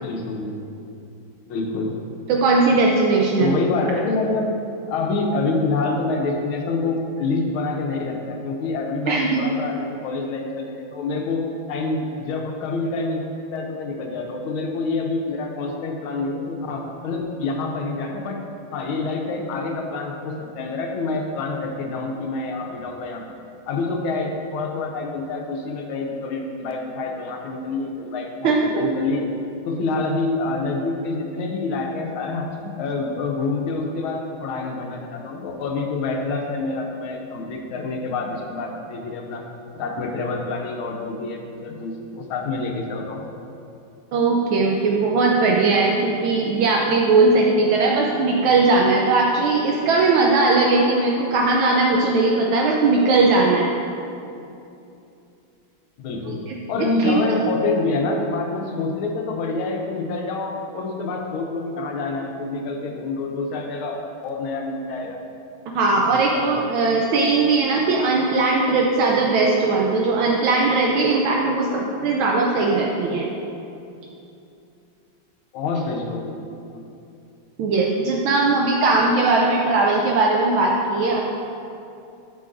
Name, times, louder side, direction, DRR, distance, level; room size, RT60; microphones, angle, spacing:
voice 1, 0.0-0.5 1.5-2.1 3.4-4.5 4.9-13.2 13.5-18.4 18.7-23.2 23.7-29.3 29.6-39.4 39.7-43.2 56.0-65.2 66.0-66.4 75.5-76.4, left 3 dB, 80° left, 2 dB, 1.6 m, -27 dB
voice 2, 2.3-3.6 9.1-9.4 28.4-28.9 44.1-53.7 56.5-57.2 65.7-73.3 77.6-81.2, right 3 dB, 75° right, -1 dB, 1.4 m, -19 dB
7.9 x 7.7 x 2.5 m, 2.7 s
omnidirectional pair, 2.3 m